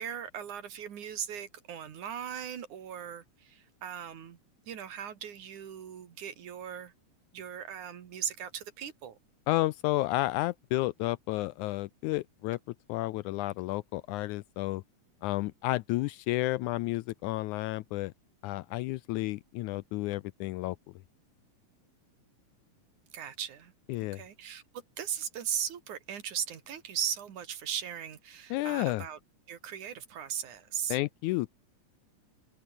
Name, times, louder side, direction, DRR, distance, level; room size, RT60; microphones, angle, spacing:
voice 1, 0.0-4.4 4.7-6.9 7.3-9.2 23.1-23.7 24.1-29.2 29.5-31.0, right 9 dB, 65° right, 3.5 m, -38 dB
voice 2, 9.5-12.6 12.9-14.8 15.2-18.1 18.4-20.8 23.9-24.2 28.5-29.1 30.9-31.5, left 18 dB, 80° left, 1.8 m, -31 dB
open air
omnidirectional pair, 3.7 m